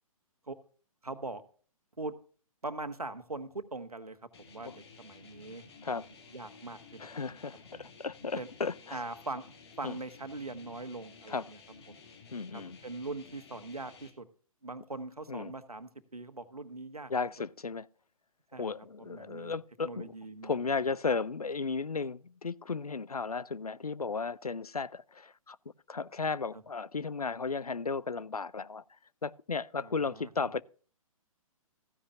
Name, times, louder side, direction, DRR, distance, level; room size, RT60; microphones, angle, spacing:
voice 1, 1.0-1.4 2.0-2.1 2.6-4.2 4.5-6.0 6.3-7.0 7.7-7.8 8.4-8.5 8.9-9.4 9.8-11.6 12.5-14.3 14.6-17.1 18.5-18.7 19.0-19.6 19.8-20.9 29.8-30.5, right 2 dB, 85° right, 1.3 m, -41 dB
sound 1, 4.3-14.1, left 4 dB, 45° left, 2.2 m, -54 dB
voice 2, 7.0-9.0 9.8-10.0 11.3-11.4 12.3-12.8 15.3-15.5 17.1-17.9 18.6-20.1 20.4-25.6 25.9-28.8 29.2-30.6, left 4 dB, 85° left, 0.5 m, -35 dB
14.5 x 10.0 x 2.5 m
figure-of-eight pair, 130°, 19 cm